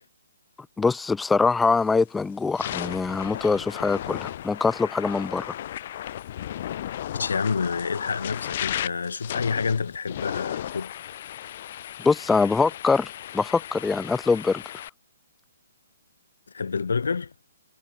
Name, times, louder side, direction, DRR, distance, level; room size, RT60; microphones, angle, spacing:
voice 1, 0.8-5.5 12.0-14.6, left 4 dB, 5° left, 0.5 m, -23 dB
sound 1, 1.7-2.0 2.4-14.9, left 11 dB, 35° left, 1.4 m, -35 dB
voice 2, 7.1-10.9 16.5-17.3, left 5 dB, 80° left, 6.8 m, -28 dB
hypercardioid pair, 175°, 0 cm